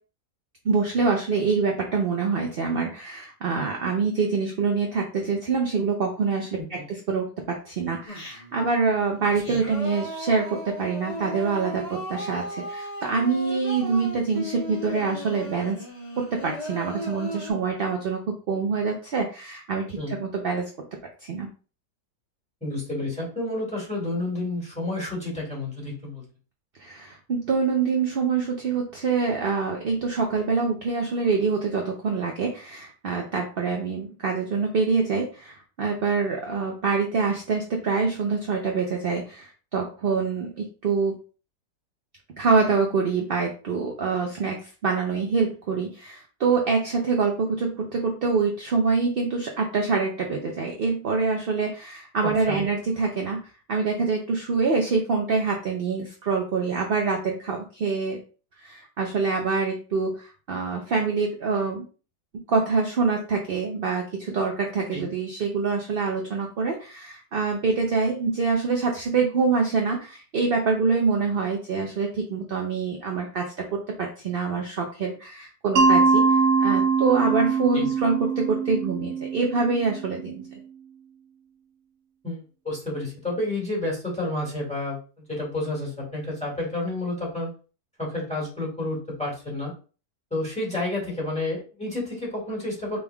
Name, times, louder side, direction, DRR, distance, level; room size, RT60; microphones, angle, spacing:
voice 1, 0.6-15.8 16.2-20.7 21.2-21.5 26.8-41.2 42.4-58.2 58.6-61.8 62.3-76.2 76.6-80.4, right 4 dB, 55° right, 1 dB, 0.6 m, -25 dB
Singing, 8.1-8.7 9.2-17.5, equal, 25° left, 1.6 m, -36 dB
voice 2, 22.6-26.2 52.2-52.6 64.9-65.1 77.7-77.9 82.2-85.0 85.3-87.5 88.0-89.7 90.3-93.0, left 2 dB, 5° left, -3 dB, 1.9 m, -30 dB
Mallet percussion, 75.8-80.5, right 4 dB, 75° right, 1.1 m, -22 dB
5.1 x 3.5 x 2.3 m, 0.36 s
omnidirectional pair, 1.7 m